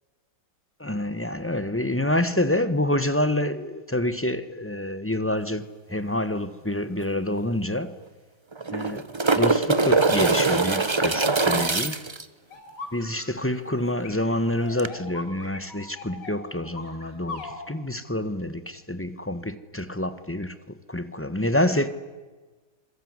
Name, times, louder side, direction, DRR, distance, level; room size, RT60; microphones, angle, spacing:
voice 1, 0.8-7.9 8.7-9.1 9.3-12.0 12.9-20.5 20.9-21.9, left 1 dB, 10° left, 1.1 m, -27 dB
sound 1, 7.0-7.1 7.4-7.5 8.5-12.2 14.8-14.9, right 3 dB, 20° right, 0.8 m, -22 dB
sound 2, 12.5-13.5 14.0-17.6, left 3 dB, 75° left, 6.4 m, -39 dB
27.0 x 22.0 x 9.7 m
omnidirectional pair, 1.9 m